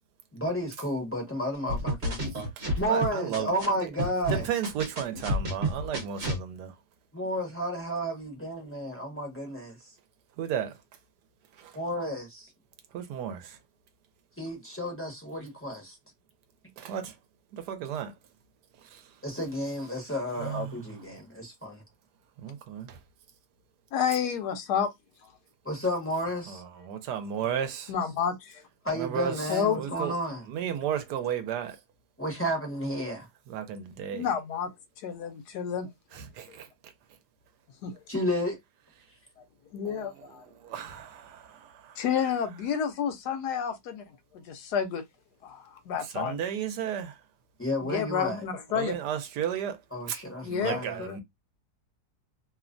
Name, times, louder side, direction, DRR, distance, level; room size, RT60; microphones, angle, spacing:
voice 1, 0.3-2.3 2.8-4.5 7.1-9.9 11.7-12.5 14.4-16.0 19.2-21.8 25.6-26.6 28.8-30.5 32.2-33.3 38.1-38.6 47.6-48.4 49.9-51.0, equal, 15° left, 0.5 m, -32 dB
sound 1, 1.7-3.7 4.0-6.4, equal, 45° right, 1.0 m, -30 dB
voice 2, 2.6-3.5 4.3-6.7 10.4-10.8 11.6-11.7 12.9-13.6 16.8-17.1 17.5-18.1 18.9-19.0 20.4-20.6 22.4-23.0 26.9-27.9 28.9-29.3 29.7-30.1 30.5-31.8 33.5-34.3 36.2-36.7 39.8-40.1 40.6-42.0 46.1-47.2 48.7-49.8 50.1-50.2 50.5-51.2, right 9 dB, 75° right, 1.1 m, -33 dB
voice 3, 23.9-24.9 27.9-28.6 29.3-29.8 34.1-34.7 35.0-35.9 37.8-37.9 39.7-40.5 42.0-44.1 44.5-45.0 45.4-46.4 47.9-49.0 50.4-51.2, left 7 dB, 75° left, 1.1 m, -30 dB
3.1 x 2.1 x 2.4 m
omnidirectional pair, 1.8 m